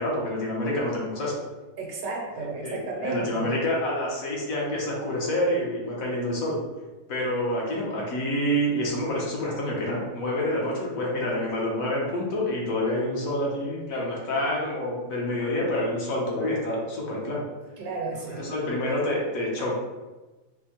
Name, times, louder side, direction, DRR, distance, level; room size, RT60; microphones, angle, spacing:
voice 1, 0.0-1.4 2.4-6.5 7.1-17.4 18.3-19.7, left 1 dB, 65° left, -3 dB, 1.1 m, -27 dB
voice 2, 1.8-3.5 17.8-18.8, right 3 dB, 70° right, -1 dB, 1.1 m, -33 dB
4.4 x 2.1 x 2.9 m, 1.2 s
omnidirectional pair, 1.7 m